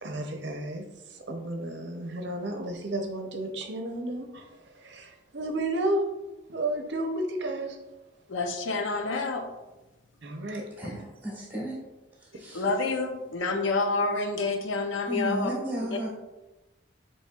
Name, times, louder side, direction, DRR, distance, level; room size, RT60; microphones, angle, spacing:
voice 1, 0.0-0.8 1.1-6.0 6.5-7.8 10.2-11.0, right 1 dB, 65° right, 4 dB, 0.7 m, -32 dB
voice 2, 8.3-9.5 12.5-15.5, left 3 dB, 85° left, 5 dB, 0.6 m, -28 dB
voice 3, 10.8-11.8 12.2-12.7 15.0-16.1, equal, 10° right, -4 dB, 1.4 m, -34 dB
7.2 x 3.1 x 2.3 m, 1.0 s
head